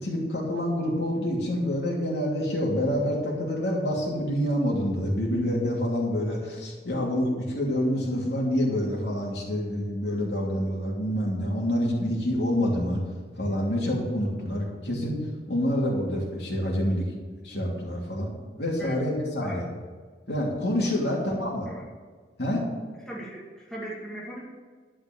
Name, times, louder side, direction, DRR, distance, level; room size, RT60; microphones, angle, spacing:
voice 1, 0.0-13.0 13.4-15.2 15.5-17.1 17.4-18.3 18.6-19.6 20.3-21.6 22.4-22.6, equal, 65° left, -2 dB, 2.9 m, -27 dB
voice 2, 23.1-24.5, right 1 dB, 5° left, -6 dB, 2.3 m, -38 dB
12.0 x 5.1 x 8.8 m, 1.5 s
head